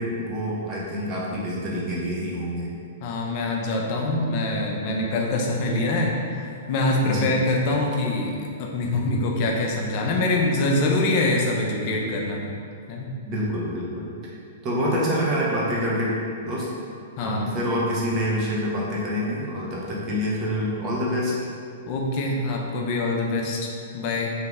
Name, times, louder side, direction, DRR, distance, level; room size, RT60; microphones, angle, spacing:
voice 1, 0.0-2.7 7.0-7.3 13.3-14.1 14.6-16.2 16.4-16.7 17.2-21.3, equal, 35° right, -5 dB, 0.9 m, -26 dB
voice 2, 3.0-12.5 12.9-13.1 17.2-17.5 21.9-24.3, left 2 dB, 45° left, -1 dB, 0.6 m, -24 dB
2.9 x 2.7 x 3.5 m, 2.4 s
hypercardioid pair, 115°, 0 cm